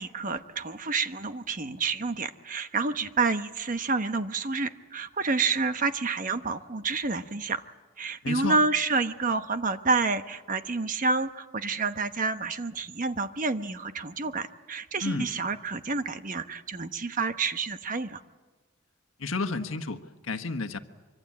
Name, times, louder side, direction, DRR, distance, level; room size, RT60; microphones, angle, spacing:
voice 1, 0.0-7.6 8.0-18.2, right 4 dB, 40° right, 9 dB, 1.1 m, -29 dB
voice 2, 8.2-8.6 15.0-15.3 19.2-20.8, left 3 dB, 85° left, 8 dB, 1.4 m, -31 dB
24.5 x 24.5 x 8.7 m, 1.3 s
head